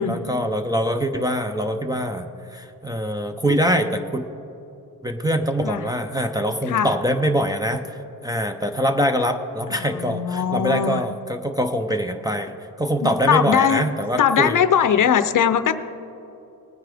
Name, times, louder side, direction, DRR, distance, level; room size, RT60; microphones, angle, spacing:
voice 1, 0.0-4.2 5.0-14.6, equal, 10° right, 6 dB, 0.4 m, -24 dB
voice 2, 9.7-11.0 13.0-13.8 14.2-15.7, left 8 dB, 60° left, 12 dB, 0.6 m, -20 dB
20.0 x 9.4 x 3.4 m, 2.9 s
wide cardioid pair, 165°, 36 cm